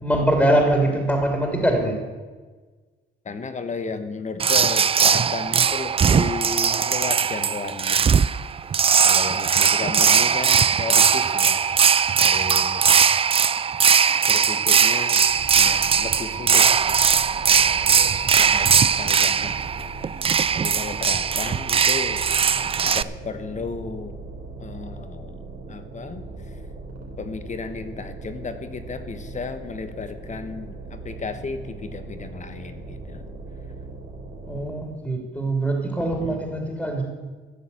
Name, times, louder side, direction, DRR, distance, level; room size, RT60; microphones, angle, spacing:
voice 1, 0.0-1.9 34.5-37.0, right 1 dB, 5° left, 2 dB, 2.9 m, -22 dB
voice 2, 3.2-8.1 9.0-11.6 12.2-13.1 14.3-15.3 15.5-16.9 17.4-19.5 19.8-19.9 20.5-22.3 22.8-24.2 24.6-25.4 25.7-26.2 27.2-33.2 36.2-36.6, left 4 dB, 35° left, 9 dB, 1.2 m, -34 dB
sound 1, 4.4-23.0, right 7 dB, 30° right, 0.4 m, -19 dB
sound 2, 15.3-34.9, right 3 dB, 70° right, 4.0 m, -39 dB
13.5 x 7.2 x 8.4 m, 1.4 s
cardioid pair, 90°, 20 cm